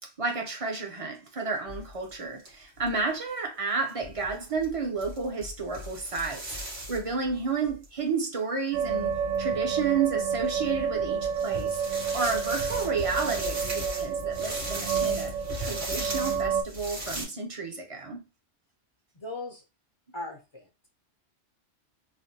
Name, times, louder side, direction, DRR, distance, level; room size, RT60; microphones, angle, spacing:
voice 1, 0.2-6.6 6.9-9.1 9.4-11.8 12.1-18.2, right 4 dB, 35° right, 0.6 m, -31 dB
sound 1, 1.7-2.1 2.4-2.5 2.8-3.0 3.9-7.8 9.3-9.4 10.2-10.3 11.2-17.2, equal, 55° right, 1.4 m, -37 dB
sound 2, 8.7-16.6, right 6 dB, 85° right, 1.0 m, -29 dB
voice 2, 19.1-19.6 20.1-20.9, left 2 dB, 45° left, 0.4 m, -39 dB
3.3 x 2.2 x 2.7 m
omnidirectional pair, 1.2 m